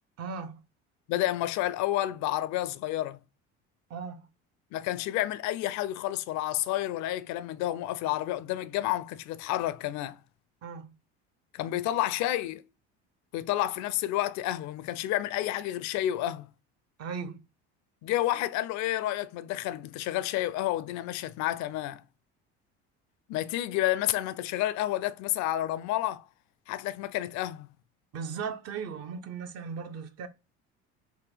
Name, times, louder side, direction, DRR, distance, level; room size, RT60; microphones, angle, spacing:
voice 1, 0.2-0.6 3.9-4.3 10.6-10.9 17.0-17.4 28.1-30.3, right 6 dB, 45° right, 0.7 m, -37 dB
voice 2, 1.1-3.2 4.7-10.2 11.5-12.6 13.3-16.5 18.0-22.0 23.3-26.3 26.7-27.7, left 14 dB, 55° left, 0.5 m, -30 dB
3.6 x 2.2 x 3.3 m
hypercardioid pair, 80°, 34 cm